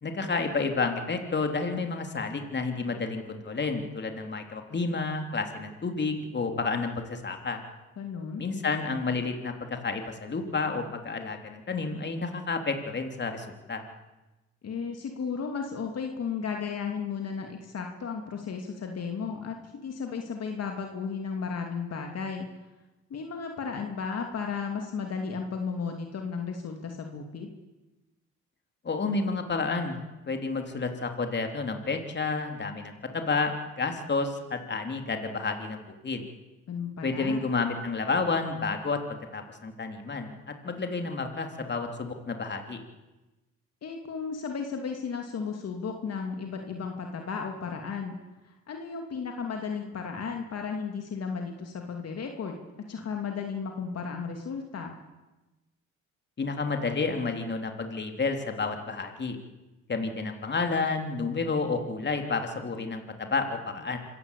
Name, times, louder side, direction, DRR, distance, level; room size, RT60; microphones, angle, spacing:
voice 1, 0.0-7.6 8.4-13.8 28.8-30.0 30.3-36.2 37.0-42.8 56.4-59.4 59.9-64.0, left 4 dB, 35° left, 5 dB, 3.5 m, -30 dB
voice 2, 8.0-8.4 14.6-22.5 23.1-27.5 36.7-37.5 43.8-48.2 48.4-52.6 52.9-55.0, left 5 dB, 55° left, 3 dB, 2.8 m, -34 dB
26.0 x 16.0 x 8.4 m, 1.1 s
cardioid pair, 90°, 30 cm